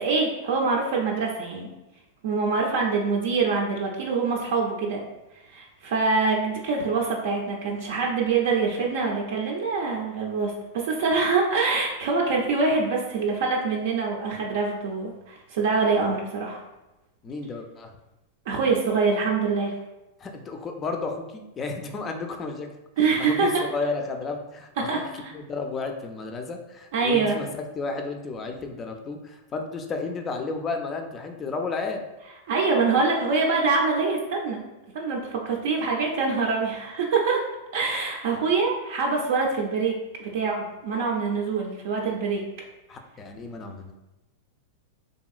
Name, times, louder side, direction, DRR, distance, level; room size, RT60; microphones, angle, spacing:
voice 1, 0.0-1.7 2.2-5.0 5.5-16.6 18.5-19.7 23.0-23.6 24.8-25.3 26.9-27.4 32.5-34.6 34.9-37.4 37.7-42.4, right 4 dB, 70° right, -2 dB, 0.5 m, -25 dB
voice 2, 17.2-17.9 20.2-22.7 23.2-25.0 25.3-32.0 42.9-43.9, left 3 dB, 25° left, 5 dB, 0.4 m, -32 dB
2.9 x 2.6 x 2.4 m, 0.99 s
hypercardioid pair, 120°, 0 cm